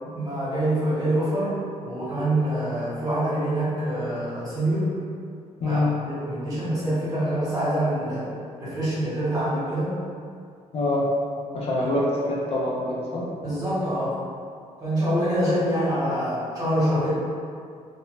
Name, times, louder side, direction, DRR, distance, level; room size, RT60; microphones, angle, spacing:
voice 1, 0.0-1.5 1.8-4.9 5.6-8.2 8.6-9.9 13.4-14.2 14.8-17.1, right 1 dB, 30° right, -10 dB, 1.1 m, -25 dB
voice 2, 5.6-5.9 10.7-11.1 11.5-13.3, left 2 dB, 50° left, -4 dB, 0.4 m, -25 dB
2.6 x 2.1 x 3.1 m, 2.3 s
cardioid pair, 125°, 13 cm